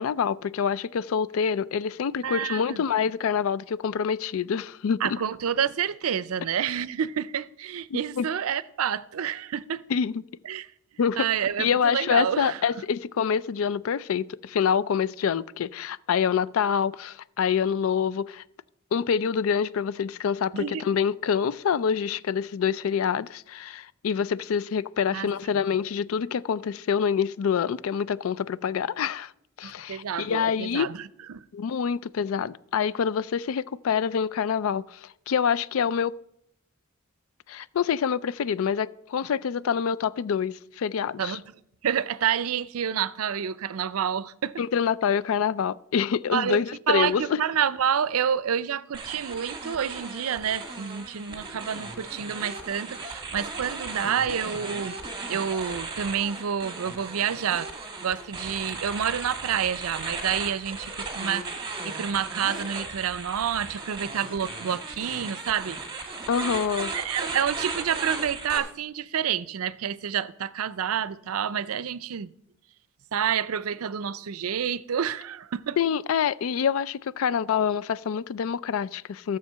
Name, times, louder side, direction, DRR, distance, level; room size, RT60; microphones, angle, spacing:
voice 1, 0.0-5.2 7.9-8.3 9.9-10.2 11.0-11.2 11.6-18.4 18.9-29.3 29.6-30.9 31.5-36.1 37.5-41.4 44.6-47.2 66.3-66.9 75.8-79.4, left 7 dB, 70° left, 0.4 m, -26 dB
voice 2, 2.2-2.8 5.0-9.8 10.4-10.7 11.2-12.6 20.5-20.8 25.1-25.3 29.6-31.4 41.2-41.5 41.8-44.6 46.3-46.6 46.9-55.0 55.3-57.7 58.0-65.8 66.9-72.3 73.1-75.8, right 8 dB, 85° right, 0.5 m, -28 dB
sound 1, 48.9-68.6, right 3 dB, 20° right, 1.6 m, -36 dB
13.5 x 6.8 x 5.6 m
head